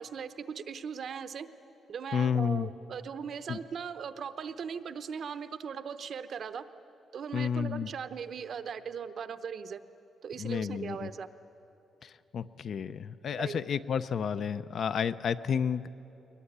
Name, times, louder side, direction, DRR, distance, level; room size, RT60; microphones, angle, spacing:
voice 1, 0.0-1.5 1.9-6.6 7.1-9.8 10.2-11.3 13.4-13.6, right 6 dB, 45° right, 11 dB, 0.8 m, -39 dB
voice 2, 2.1-2.7 3.5-3.6 7.3-7.9 10.4-11.1 12.0-15.9, left 7 dB, 50° left, 13 dB, 0.5 m, -31 dB
21.5 x 21.5 x 10.0 m, 2.9 s
cardioid pair, 170°, 0 cm